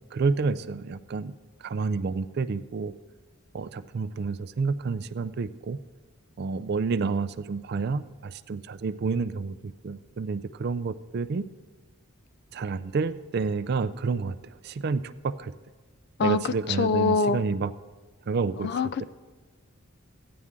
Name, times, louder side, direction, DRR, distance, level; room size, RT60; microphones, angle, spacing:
voice 1, 0.1-1.3 1.6-2.9 3.5-5.8 6.4-11.4 12.5-15.5 16.2-17.7 18.3-18.7 19.0-19.1, right 4 dB, 45° right, 13 dB, 0.3 m, -29 dB
voice 2, 16.2-17.4 18.6-19.0, left 4 dB, 50° left, 14 dB, 0.3 m, -25 dB
14.5 x 9.5 x 3.7 m, 1.4 s
head